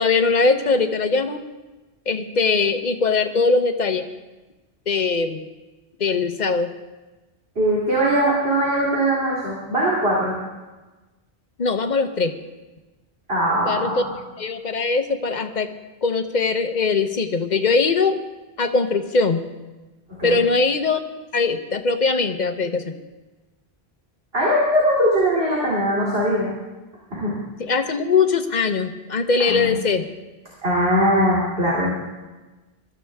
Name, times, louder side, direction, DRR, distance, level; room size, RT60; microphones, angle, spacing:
voice 1, 0.0-1.4 2.1-4.1 4.9-5.4 6.0-6.7 11.6-12.4 13.7-14.1 14.4-15.7 16.0-18.2 18.6-19.4 20.2-21.0 21.3-22.9 27.6-30.1, left 4 dB, 45° left, 7 dB, 1.1 m, -21 dB
voice 2, 7.5-10.4 13.3-14.1 20.2-20.4 24.3-26.5 27.1-27.4 29.4-29.8 30.6-31.9, equal, 65° right, -6 dB, 3.4 m, -20 dB
21.5 x 13.5 x 3.5 m, 1.1 s
omnidirectional pair, 1.1 m